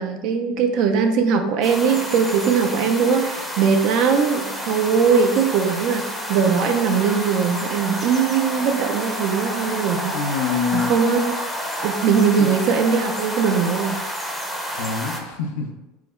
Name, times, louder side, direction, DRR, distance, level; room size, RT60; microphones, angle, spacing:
voice 1, 0.0-10.2 10.7-11.3 11.8-14.0, right 6 dB, 65° right, 6 dB, 0.4 m, -20 dB
sound 1, 1.6-15.2, equal, ahead, 0.6 m, -30 dB
voice 2, 10.1-11.0 12.4-12.5 14.7-15.7, left 5 dB, 80° left, 3 dB, 0.5 m, -25 dB
3.1 x 2.0 x 3.5 m, 1.1 s
supercardioid pair, 100°, 0 cm